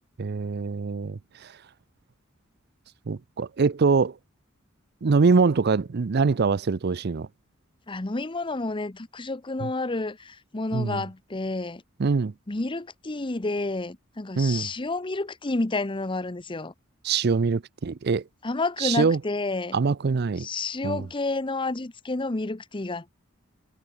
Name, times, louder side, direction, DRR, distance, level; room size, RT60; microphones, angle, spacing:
voice 1, 0.2-1.2 3.1-4.1 5.0-7.3 9.6-9.7 10.7-11.0 12.0-12.3 14.4-14.7 17.0-18.2 18.8-19.2 19.7-20.5 20.8-21.0, right 4 dB, 50° right, 0.5 m, -23 dB
voice 2, 7.9-11.8 12.5-16.7 18.4-19.8 20.3-23.1, left 2 dB, 25° left, 0.8 m, -30 dB
head